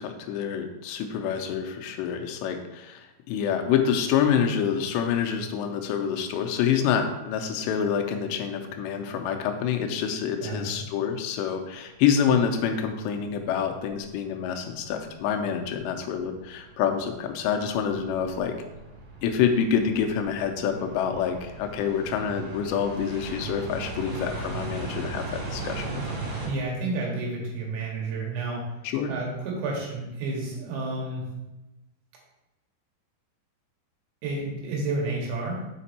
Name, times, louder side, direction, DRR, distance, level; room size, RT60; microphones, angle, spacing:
voice 1, 0.0-18.6 19.2-26.0 28.8-29.1, left 7 dB, 80° left, 5 dB, 2.7 m, -27 dB
voice 2, 10.4-10.8 26.4-28.8 29.1-31.3 34.2-35.6, right 2 dB, 85° right, -3 dB, 4.1 m, -30 dB
sound 1, 13.2-13.3 13.8-14.4 14.8-26.5, right 3 dB, 60° right, 3.8 m, -38 dB
7.3 x 5.1 x 4.2 m, 0.98 s
omnidirectional pair, 5.2 m